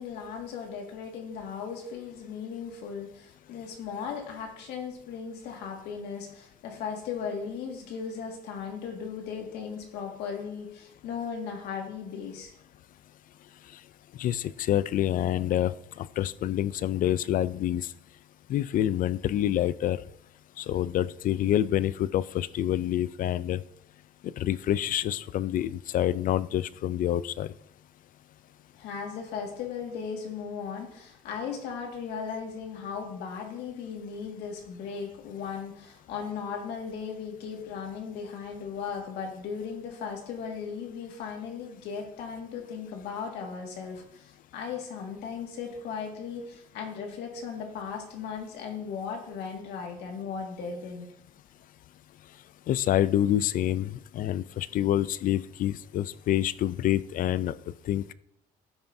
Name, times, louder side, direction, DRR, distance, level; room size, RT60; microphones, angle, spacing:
voice 1, 0.0-12.5 28.7-51.1, left 6 dB, 85° left, 1 dB, 2.0 m, -37 dB
voice 2, 14.2-17.9 18.5-20.0 20.6-23.6 24.2-27.5 52.7-57.5 57.8-58.1, left 12 dB, 55° left, 17 dB, 0.4 m, -27 dB
13.0 x 5.7 x 2.7 m, 0.75 s
cardioid pair, 110°, 17 cm